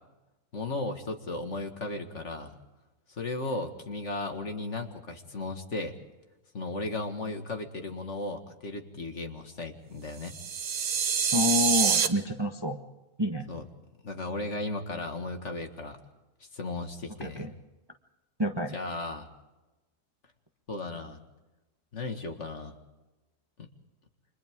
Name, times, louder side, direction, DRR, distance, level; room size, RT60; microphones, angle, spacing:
voice 1, 0.5-2.5 3.1-5.9 6.5-10.4 13.5-13.7 14.0-16.0 16.5-17.5 18.7-19.3 20.7-21.2 21.9-22.8 23.6-23.7, left 2 dB, 50° left, 5 dB, 2.1 m, -35 dB
sound 1, 10.3-12.1, right 7 dB, 60° right, 1.4 m, -26 dB
voice 2, 11.3-12.8 13.2-13.5 17.2-17.5 18.4-18.7, left 1 dB, 20° right, 5 dB, 0.9 m, -28 dB
29.5 x 25.5 x 3.7 m, 1.1 s
omnidirectional pair, 1.6 m